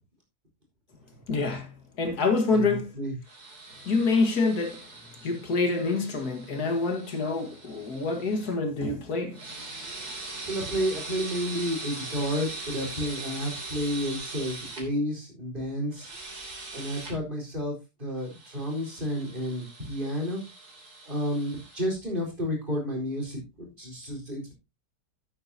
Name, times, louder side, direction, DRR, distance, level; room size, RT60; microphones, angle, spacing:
voice 1, 1.3-2.9 3.9-4.8 5.2-9.4, left 3 dB, 85° left, 2.3 m, -26 dB
voice 2, 2.5-3.1 10.4-16.1 16.7-20.4 21.1-24.5, equal, 30° right, 4.5 m, -31 dB
sound 1, 3.3-8.5 9.3-14.8 15.9-17.1 18.2-21.8, right 3 dB, 90° right, 3.6 m, -41 dB
11.5 x 8.9 x 2.8 m
omnidirectional pair, 1.6 m